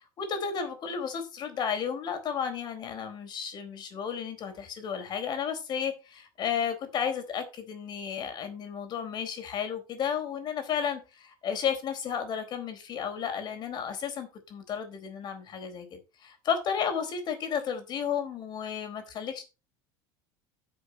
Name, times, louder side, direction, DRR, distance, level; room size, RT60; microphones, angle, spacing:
voice 1, 0.2-19.4, left 7 dB, 45° left, 4.1 m, -33 dB
10.5 x 5.4 x 6.4 m
supercardioid pair, 110°, 10 cm